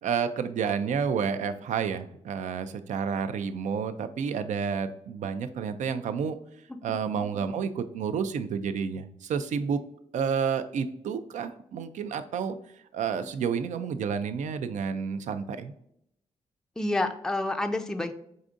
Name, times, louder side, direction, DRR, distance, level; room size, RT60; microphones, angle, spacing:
voice 1, 0.0-6.4 6.8-9.8 10.1-12.6 12.9-15.7, right 6 dB, 75° right, 10 dB, 0.4 m, -30 dB
voice 2, 16.8-18.1, left 2 dB, 5° left, 7 dB, 0.4 m, -29 dB
4.9 x 2.6 x 2.5 m, 0.75 s
cardioid pair, 60°, 13 cm